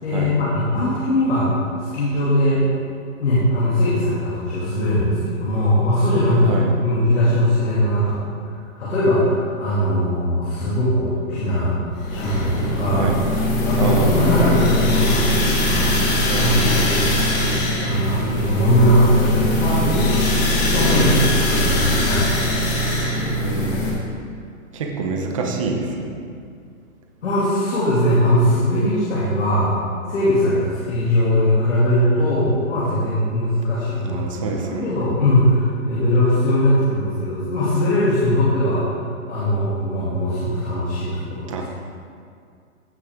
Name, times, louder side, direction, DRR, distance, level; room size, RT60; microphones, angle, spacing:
voice 1, 0.0-2.6 3.2-8.2 8.5-11.7 12.1-17.5 17.8-20.2 20.7-22.7 27.2-29.7 30.1-34.3 34.6-38.9 39.3-41.6, left 1 dB, 55° left, -9 dB, 2.8 m, -20 dB
sound 1, 12.0-23.9, left 1 dB, 30° left, 1.7 m, -21 dB
voice 2, 13.8-14.3 16.3-16.8 20.9-21.0 23.4-23.9 24.7-26.2 34.1-34.9 41.5-41.6, right 4 dB, 25° right, 1 dB, 0.7 m, -26 dB
15.0 x 6.2 x 3.7 m, 2.2 s
hypercardioid pair, 165°, 43 cm